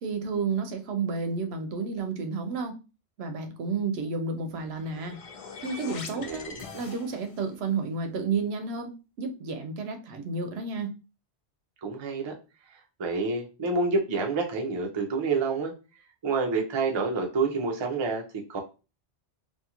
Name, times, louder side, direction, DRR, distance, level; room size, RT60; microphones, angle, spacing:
voice 1, 0.0-2.8 3.2-5.2 5.6-6.5 6.7-8.9 9.2-10.9, right 4 dB, 75° right, 6 dB, 0.8 m, -31 dB
sound 1, 4.5-7.5, left 5 dB, 60° left, 0.3 m, -43 dB
voice 2, 6.1-6.6 11.8-12.3 13.0-15.7 16.2-18.2 18.5-18.6, right 4 dB, 40° right, 2 dB, 0.4 m, -28 dB
2.6 x 2.4 x 2.8 m, 0.31 s
omnidirectional pair, 1.1 m